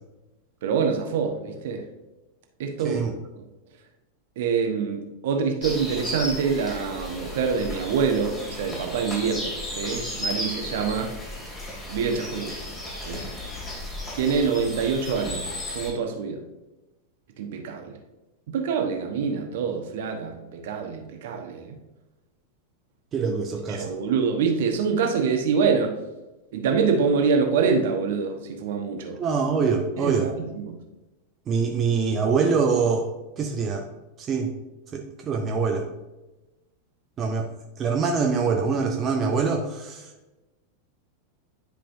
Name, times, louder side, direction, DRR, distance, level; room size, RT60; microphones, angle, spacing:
voice 1, 0.6-1.8 2.6-3.0 4.4-11.1 11.9-12.6 13.1-13.3 14.2-15.4 15.7-16.4 17.4-18.0 18.5-21.8 23.7-25.9 26.5-29.2 30.0-30.8, right 5 dB, 55° right, 4 dB, 1.1 m, -25 dB
sound 1, 5.6-15.9, left 1 dB, 20° left, 2.3 m, -34 dB
voice 2, 23.1-23.9 29.2-30.3 31.5-33.1 33.4-33.9 34.2-34.5 34.9-35.9 37.2-37.5 37.8-40.1, right 5 dB, 25° right, 2 dB, 0.7 m, -24 dB
10.5 x 4.9 x 2.7 m, 1.1 s
figure-of-eight pair, 90°, 0 cm